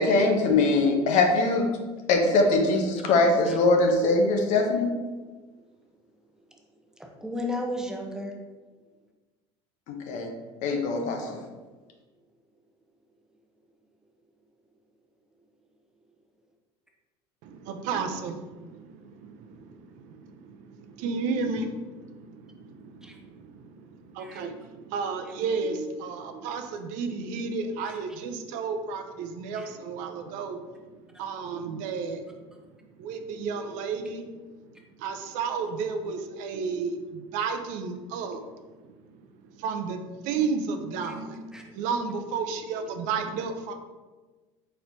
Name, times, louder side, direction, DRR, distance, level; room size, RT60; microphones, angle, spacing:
voice 1, 0.0-1.7 2.1-4.9 9.9-10.3 10.6-11.4, left 3 dB, 60° left, 3 dB, 0.8 m, -22 dB
voice 2, 7.0-8.4 24.3-24.4 27.8-28.0 29.5-29.7 32.5-32.6 41.1-41.2 41.5-41.7, left 1 dB, 5° right, 1 dB, 0.8 m, -34 dB
voice 3, 17.4-19.0 19.4-19.5 20.1-20.2 21.0-21.8 22.1-22.8 24.2-30.6 31.2-32.2 33.0-34.2 35.0-38.4 39.6-43.7, right 5 dB, 65° right, 6 dB, 0.5 m, -32 dB
4.3 x 4.2 x 2.7 m, 1.3 s
supercardioid pair, 90°, 14 cm